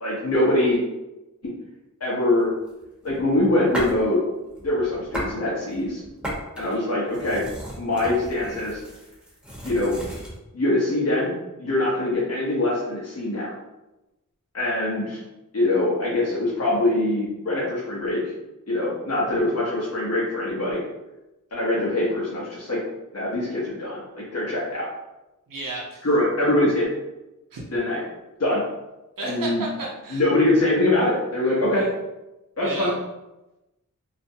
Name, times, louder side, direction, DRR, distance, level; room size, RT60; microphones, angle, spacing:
voice 1, 0.0-0.8 2.0-2.5 3.0-4.2 4.6-6.0 6.6-7.4 7.8-8.8 9.6-9.9 10.5-11.3 11.6-13.5 14.5-15.2 15.5-18.2 18.7-20.8 21.5-22.8 23.1-24.9 26.0-26.9 27.7-28.0 28.4-28.6 29.2-29.7 30.1-31.9 32.6-32.9, left 1 dB, 50° left, -7 dB, 0.8 m, -23 dB
sound 1, 2.7-4.1 4.5-5.4 5.7-10.4, equal, 5° right, 0.9 m, -35 dB
voice 2, 25.5-26.1 27.5-27.6 29.2-30.2 31.7-31.8 32.6-32.9, right 3 dB, 85° right, -3 dB, 0.6 m, -33 dB
2.4 x 2.1 x 2.6 m, 0.98 s
wide cardioid pair, 55°, 32 cm